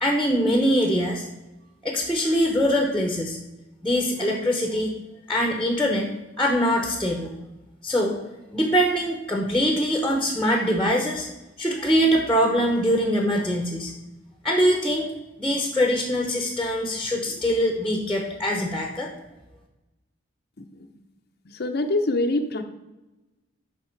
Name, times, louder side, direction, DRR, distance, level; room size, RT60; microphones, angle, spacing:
voice 1, 0.0-1.3 1.8-3.4 3.8-5.0 5.3-6.1 6.4-7.3 7.8-8.2 8.5-11.3 11.6-13.9 14.4-15.1 15.4-19.1, equal, 5° left, 2 dB, 0.9 m, -23 dB
voice 2, 21.5-22.6, left 2 dB, 50° left, 5 dB, 0.6 m, -24 dB
11.0 x 4.4 x 4.5 m, 1.0 s
head